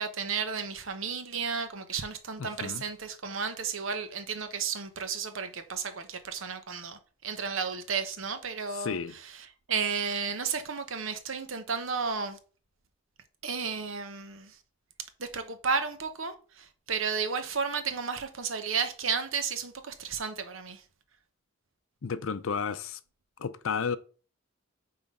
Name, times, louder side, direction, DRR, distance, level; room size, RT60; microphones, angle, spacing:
voice 1, 0.0-9.0 9.7-12.4 13.4-14.5 15.2-20.8, right 5 dB, 75° right, 1.0 m, -33 dB
voice 2, 2.4-2.8 8.7-9.1 22.0-23.0 23.4-24.0, left 6 dB, 80° left, 0.5 m, -32 dB
5.6 x 3.9 x 5.4 m
head